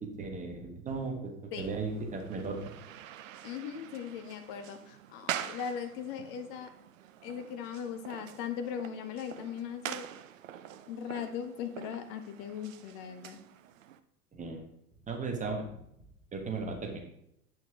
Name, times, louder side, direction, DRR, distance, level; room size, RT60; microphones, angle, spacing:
voice 1, 0.2-2.6 14.3-14.6 15.1-15.6 16.3-17.0, right 4 dB, 15° right, 2 dB, 1.3 m, -36 dB
sound 1, 1.6-14.0, right 11 dB, 60° right, 0.6 m, -45 dB
voice 2, 3.4-6.7 7.2-10.1 10.9-13.4, left 8 dB, 40° left, 8 dB, 1.0 m, -39 dB
8.9 x 6.1 x 3.6 m, 0.75 s
figure-of-eight pair, 95°, 46 cm